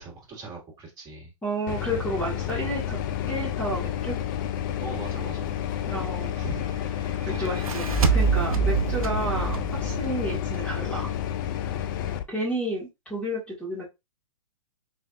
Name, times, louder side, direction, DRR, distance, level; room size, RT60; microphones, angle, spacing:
voice 1, 0.0-1.3 4.8-6.7 7.2-7.9 11.7-12.1, right 2 dB, 20° right, 1.9 m, -41 dB
voice 2, 1.4-4.2 5.9-6.3 7.4-11.1 12.3-13.9, right 1 dB, 5° left, 1.6 m, -31 dB
sound 1, 1.7-12.2, left 10 dB, 35° left, 0.4 m, -30 dB
sound 2, 7.4-10.8, right 6 dB, 80° right, 0.8 m, -26 dB
4.1 x 3.1 x 2.4 m
hypercardioid pair, 120°, 18 cm